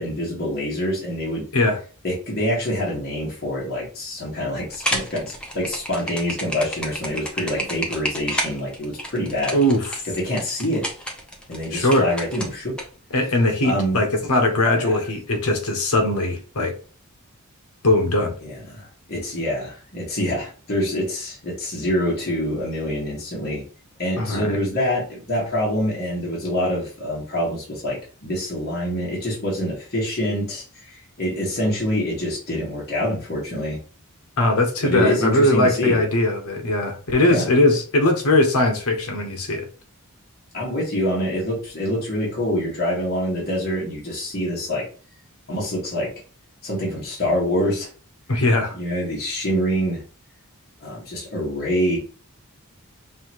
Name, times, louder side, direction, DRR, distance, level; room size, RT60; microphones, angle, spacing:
voice 1, 0.0-1.4 2.0-9.6 10.1-10.8 11.5-12.7 13.6-14.0 14.8-15.0 18.4-23.6 24.0-33.8 34.8-36.0 37.2-37.5 40.5-44.8 45.5-46.1 46.6-47.9 48.7-50.0 50.8-52.0, equal, 45° left, -6 dB, 1.7 m, -25 dB
sound 1, 4.7-12.8, equal, 5° left, 0.8 m, -30 dB
voice 2, 9.5-9.9 11.7-12.1 13.1-16.7 17.8-18.3 24.2-24.6 34.4-39.7 48.3-48.8, left 1 dB, 75° left, 4 dB, 1.0 m, -20 dB
5.5 x 2.7 x 3.0 m, 0.38 s
head